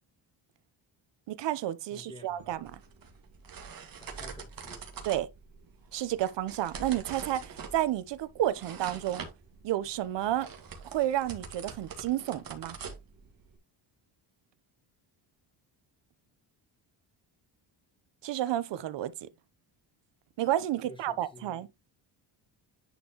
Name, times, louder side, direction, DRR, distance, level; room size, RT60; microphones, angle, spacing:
voice 1, 1.3-2.8 5.1-5.3 5.9-9.3 9.6-10.5 10.9-12.8 18.2-19.3 20.4-21.7, right 13 dB, 65° right, 0.9 m, -31 dB
voice 2, 1.9-2.5 4.0-4.9 20.8-21.5, left 1 dB, 10° left, 1.8 m, -50 dB
sound 1, 2.4-13.6, right 6 dB, 45° right, 1.9 m, -45 dB
10.0 x 4.5 x 3.0 m
cardioid pair, 135°, 46 cm